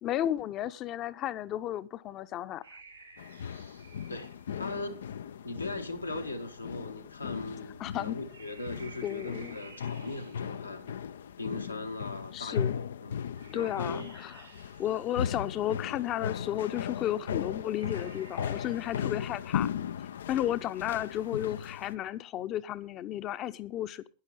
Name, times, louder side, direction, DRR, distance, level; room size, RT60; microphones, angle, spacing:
voice 1, 0.0-2.6 7.8-8.2 9.0-9.6 12.3-12.8 13.5-14.4 14.8-19.7 20.3-24.0, left 12 dB, 35° left, 0.8 m, -33 dB
sound 1, 2.6-21.5, right 4 dB, 80° right, 3.5 m, -58 dB
sound 2, 3.2-21.9, left 8 dB, 65° left, 0.5 m, -37 dB
voice 2, 4.1-5.0 5.4-10.9 11.4-14.1, left 2 dB, 85° left, 1.5 m, -39 dB
11.5 x 10.5 x 5.2 m
figure-of-eight pair, 90°, 0 cm